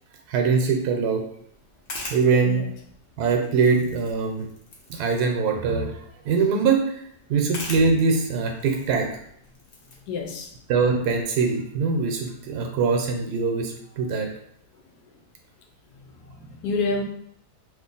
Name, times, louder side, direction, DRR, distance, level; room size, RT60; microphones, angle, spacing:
voice 1, 0.3-1.2 2.1-2.6 3.2-4.5 4.9-6.0 6.2-6.8 7.3-9.1 10.7-14.3, right 5 dB, 75° right, 3 dB, 1.1 m, -22 dB
sound 1, 1.4-12.3, left 2 dB, 50° left, 0.7 m, -44 dB
voice 2, 10.1-10.5 16.1-17.0, left 3 dB, 80° left, 3 dB, 1.2 m, -28 dB
2.8 x 2.5 x 3.8 m, 0.67 s
omnidirectional pair, 1.7 m